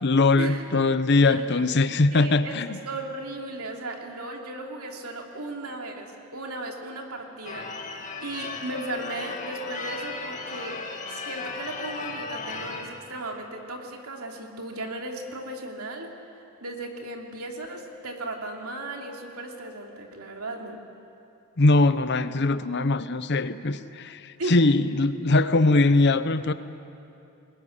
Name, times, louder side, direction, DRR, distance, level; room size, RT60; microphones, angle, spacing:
voice 1, 0.0-2.8 21.6-26.5, left 2 dB, 50° left, 13 dB, 0.8 m, -21 dB
voice 2, 1.3-1.6 2.1-7.8 8.2-10.8 11.1-16.1 16.6-20.8 24.4-24.6, right 2 dB, 80° right, 1 dB, 2.8 m, -36 dB
Church bell / Car / Alarm, 7.4-13.0, left 4 dB, 35° left, 2.1 m, -36 dB
20.5 x 20.0 x 9.9 m, 2.7 s
head